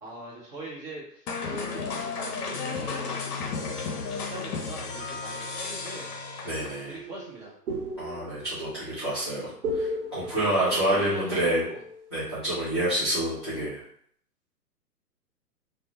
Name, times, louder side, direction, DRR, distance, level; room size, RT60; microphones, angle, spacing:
voice 1, 0.0-3.8 4.3-6.1 6.9-7.5 10.2-11.8, right 1 dB, 20° right, -6 dB, 0.7 m, -41 dB
sound 1, 1.3-6.9, left 4 dB, 65° left, 0.6 m, -33 dB
voice 2, 6.4-6.9 8.0-11.6 12.1-13.8, right 1 dB, 20° left, -14 dB, 0.4 m, -28 dB
sound 2, 6.6-12.2, right 1 dB, 55° right, 0.9 m, -36 dB
2.3 x 2.0 x 2.8 m, 0.65 s
figure-of-eight pair, 125°, 49 cm